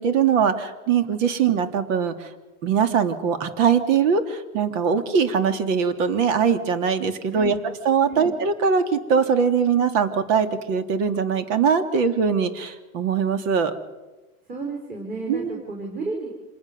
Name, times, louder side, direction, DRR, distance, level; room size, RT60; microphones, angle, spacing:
voice 1, 0.0-2.3 2.6-7.5 7.8-13.7 15.3-15.6, right 6 dB, 65° right, 8 dB, 2.9 m, -21 dB
voice 2, 14.5-16.3, right 3 dB, 20° right, 0 dB, 4.9 m, -32 dB
26.5 x 20.0 x 7.0 m, 1.1 s
supercardioid pair, 145°, 43 cm